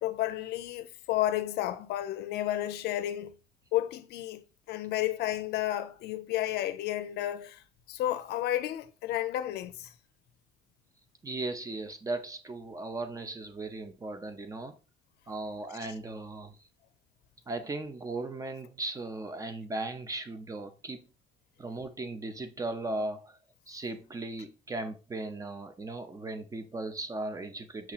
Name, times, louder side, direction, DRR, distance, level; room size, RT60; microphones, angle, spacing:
voice 1, 0.0-3.3 3.7-4.4 4.7-7.6 7.9-9.9, left 13 dB, 75° left, 0.5 m, -32 dB
voice 2, 11.2-14.8 15.3-16.6 17.5-21.0 21.6-23.4 23.7-27.9, right 2 dB, 20° right, 0.5 m, -37 dB
5.9 x 2.8 x 2.3 m
cardioid pair, 110°, 17 cm